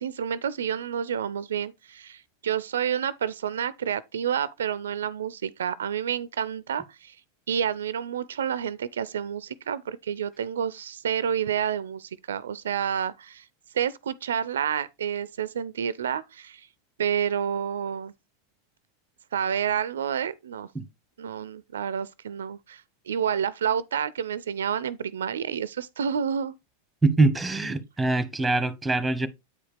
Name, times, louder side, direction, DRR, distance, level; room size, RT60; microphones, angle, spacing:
voice 1, 0.0-7.2 7.5-13.5 13.7-16.7 17.0-18.1 19.3-20.7 21.2-26.5, right 8 dB, 75° right, 0.4 m, -29 dB
voice 2, 27.0-29.3, right 3 dB, 5° right, 0.9 m, -23 dB
8.5 x 4.9 x 3.3 m
hypercardioid pair, 95°, 0 cm